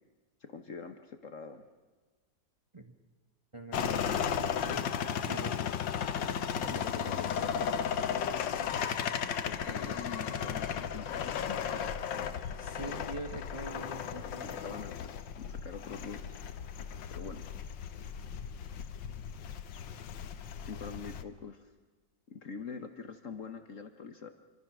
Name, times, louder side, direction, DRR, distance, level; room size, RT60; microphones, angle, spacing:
voice 1, 0.4-1.7 6.1-7.9 9.4-11.9 14.1-16.3 17.1-17.4 20.6-21.7 22.3-24.3, left 5 dB, 50° left, 8 dB, 1.4 m, -45 dB
voice 2, 3.5-5.9 12.5-14.8, right 2 dB, 20° right, 5 dB, 1.5 m, -44 dB
sound 1, 3.7-21.2, left 8 dB, 85° left, 1.7 m, -35 dB
28.5 x 24.0 x 6.2 m, 1.3 s
omnidirectional pair, 1.9 m